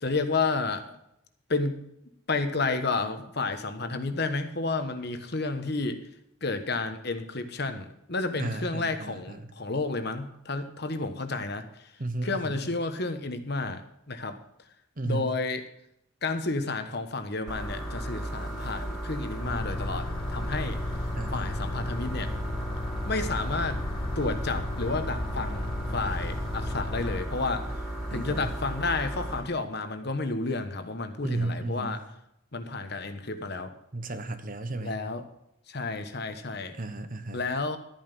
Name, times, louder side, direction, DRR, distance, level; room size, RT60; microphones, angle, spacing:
voice 1, 0.0-1.0 1.5-1.8 2.3-6.0 6.4-11.9 12.2-14.4 15.0-15.6 16.2-21.0 21.3-22.3 23.1-23.8 24.1-27.7 28.1-32.0 32.5-33.7 34.8-35.3 35.7-36.7 37.3-37.8, left 3 dB, 50° left, 8 dB, 1.2 m, -31 dB
voice 2, 8.4-9.5 12.0-12.6 15.0-15.3 21.2-21.5 28.1-28.5 31.2-32.0 33.9-35.0 36.7-37.4, right 2 dB, 40° right, 10 dB, 1.0 m, -34 dB
sound 1, 17.5-29.4, right 1 dB, ahead, 3.1 m, -35 dB
sound 2, 19.4-27.2, left 2 dB, 25° left, 0.4 m, -35 dB
13.0 x 9.1 x 5.4 m, 0.79 s
head